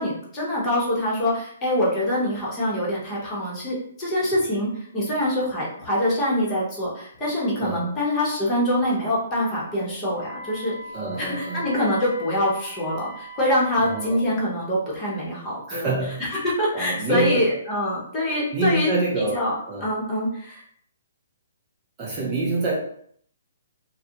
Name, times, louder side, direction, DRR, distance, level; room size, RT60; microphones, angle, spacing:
voice 1, 0.0-10.8 11.2-15.9 16.4-18.9 19.3-19.5 19.8-20.6, left 1 dB, 20° left, -6 dB, 0.9 m, -24 dB
voice 2, 7.6-7.9 10.9-11.7 13.8-14.2 15.7-16.2 16.7-17.5 18.5-19.9 22.0-22.8, right 3 dB, 25° right, -5 dB, 0.5 m, -26 dB
Wind instrument woodwind instrument, 10.1-14.2, equal, ahead, 1.2 m, -40 dB
2.3 x 2.1 x 2.8 m, 0.64 s
hypercardioid pair, 150°, 0 cm